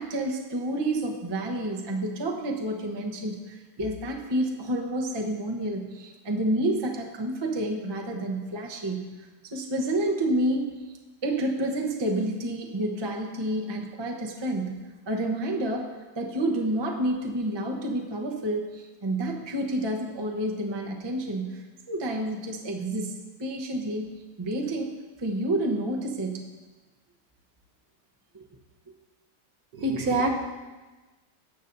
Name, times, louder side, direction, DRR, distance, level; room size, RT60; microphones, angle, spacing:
voice 1, 0.0-9.1 9.4-10.7 11.2-26.5 28.3-28.4, right 1 dB, 20° right, 1 dB, 0.7 m, -29 dB
voice 2, 29.7-30.3, right 2 dB, 60° right, 2 dB, 1.4 m, -25 dB
19.0 x 7.0 x 2.6 m, 1.2 s
omnidirectional pair, 1.8 m